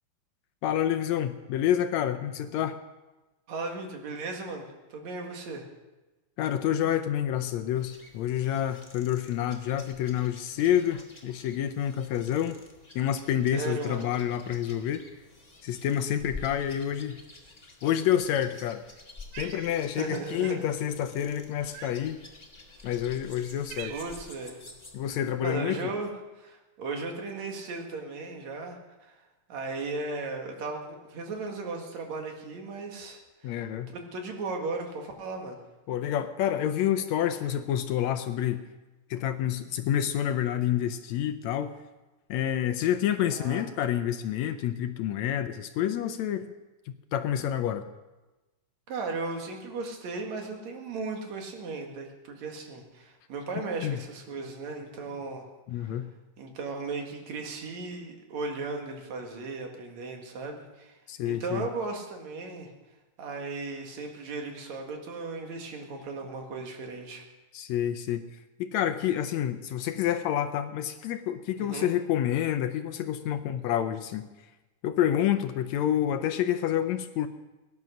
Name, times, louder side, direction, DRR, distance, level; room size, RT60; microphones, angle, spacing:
voice 1, 0.6-2.8 6.4-12.6 13.0-15.0 15.6-17.2 17.8-18.8 19.4-22.2 22.8-23.9 24.9-25.9 33.4-33.9 35.9-38.6 39.1-41.7 42.3-46.5 46.9-47.9 53.8-54.0 55.7-56.1 61.1-61.6 67.5-68.2 68.6-74.3 74.8-77.3, left 10 dB, 75° left, 9 dB, 1.8 m, -28 dB
voice 2, 3.5-5.7 13.5-14.1 20.0-20.6 23.9-24.6 25.4-26.1 26.4-29.2 29.5-33.6 33.9-35.6 43.3-43.6 48.9-55.5 55.7-56.0 56.4-61.0 61.3-62.7 63.2-67.2 71.6-71.9, right 3 dB, 65° right, 2 dB, 3.1 m, -36 dB
sound 1, 7.8-25.3, left 3 dB, 20° left, 1.4 m, -50 dB
Cat, 19.3-20.1 20.4-20.7 21.7-22.2 22.9-23.0 23.4-24.4, right 12 dB, 80° right, 2.0 m, -44 dB
18.0 x 11.0 x 6.4 m, 1.1 s
omnidirectional pair, 3.6 m